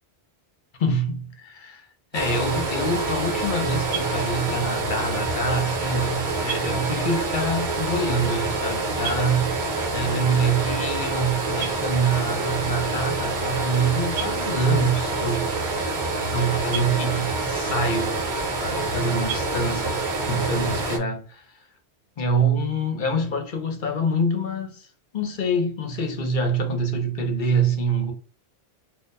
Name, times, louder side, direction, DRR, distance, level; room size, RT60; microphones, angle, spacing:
voice 1, 0.8-1.9 2.1-9.6 9.9-15.5 16.3-18.2 18.6-21.6 22.2-24.9 25.1-28.1, right 2 dB, 55° left, 0.8 m, -25 dB
sound 1, 2.1-21.0, right 3 dB, 50° right, 0.8 m, -27 dB
4.2 x 2.2 x 2.5 m
omnidirectional pair, 1.1 m